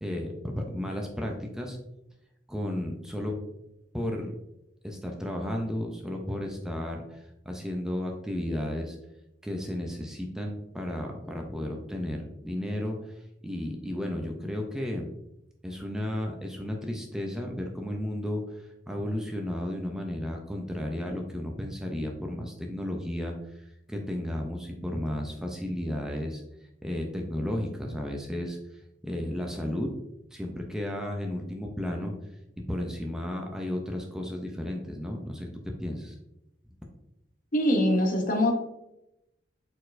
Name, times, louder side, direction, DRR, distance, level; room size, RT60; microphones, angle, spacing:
voice 1, 0.0-1.8 2.5-3.4 3.9-4.3 4.8-9.0 9.4-15.1 15.6-26.4 26.8-29.9 30.3-32.1 32.7-35.5 35.8-36.2, left 1 dB, 5° right, 1 dB, 0.4 m, -33 dB
voice 2, 37.5-38.5, left 1 dB, 50° left, 3 dB, 0.7 m, -23 dB
4.3 x 4.1 x 2.5 m, 0.88 s
head